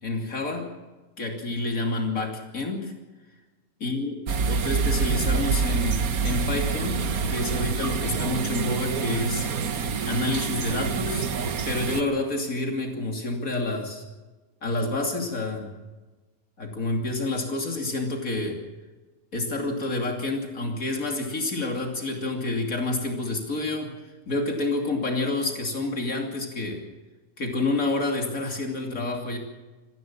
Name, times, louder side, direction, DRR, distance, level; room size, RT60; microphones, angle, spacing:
voice 1, 0.0-0.7 1.2-2.9 3.8-4.2 4.5-9.5 10.1-11.3 11.7-14.0 14.6-15.7 16.6-18.6 19.3-23.9 24.3-26.8 27.4-29.4, left 2 dB, 70° left, 1 dB, 3.3 m, -28 dB
sound 1, 4.3-12.0, right 5 dB, 85° right, 1.6 m, -26 dB
25.0 x 15.5 x 7.4 m, 1.2 s
omnidirectional pair, 1.5 m